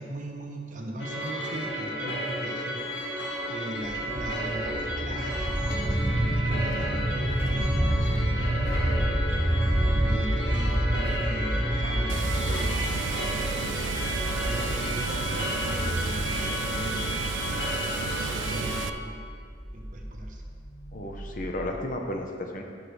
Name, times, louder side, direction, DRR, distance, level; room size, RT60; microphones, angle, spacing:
voice 1, 0.0-3.2 3.5-9.1 10.0-13.0 13.2-14.0 14.3-17.2 18.3-19.2 19.7-20.4, right 1 dB, 45° right, 2 dB, 1.0 m, -38 dB
sound 1, 1.0-18.9, equal, 70° left, 1.4 m, -33 dB
sound 2, 3.8-21.7, right 1 dB, 10° right, 1.3 m, -29 dB
Water, 12.1-18.9, right 7 dB, 90° right, 0.3 m, -33 dB
voice 2, 20.9-22.6, left 1 dB, 45° left, 2 dB, 0.9 m, -33 dB
13.5 x 6.5 x 3.3 m, 2.2 s
head